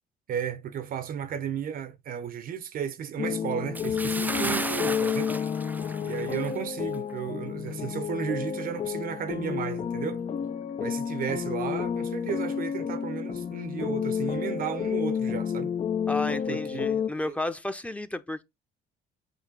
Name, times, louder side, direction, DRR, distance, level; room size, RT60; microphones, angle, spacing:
voice 1, 0.3-5.3 6.0-10.2 10.8-15.8 16.5-17.4, right 8 dB, 55° right, 1.0 m, -34 dB
sound 1, 3.2-17.1, left 7 dB, 40° left, 0.8 m, -30 dB
Bathtub (filling or washing) / Splash splatter, 3.7-6.6 6.9-7.1 7.7-7.8, right 2 dB, 10° right, 0.4 m, -34 dB
voice 2, 16.1-18.4, left 1 dB, 10° left, 0.9 m, -32 dB
8.0 x 3.2 x 6.2 m
cardioid pair, 110°, 17 cm